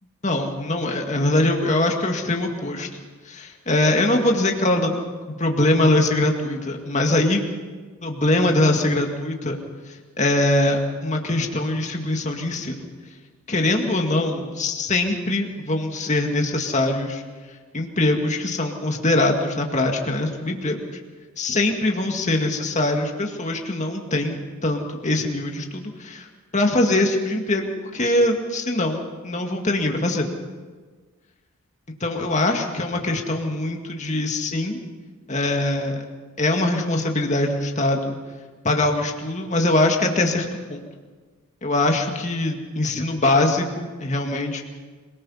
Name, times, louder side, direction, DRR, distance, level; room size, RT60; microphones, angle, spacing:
voice 1, 0.2-2.9 3.3-5.0 5.4-7.4 8.0-9.6 9.9-12.9 13.5-17.2 17.7-20.8 21.4-26.3 26.5-30.3 32.0-34.8 35.3-36.0 36.4-38.2 38.6-40.9 41.6-44.6, left 2 dB, 35° left, 2 dB, 2.0 m, -22 dB
26.5 x 19.0 x 5.6 m, 1.4 s
head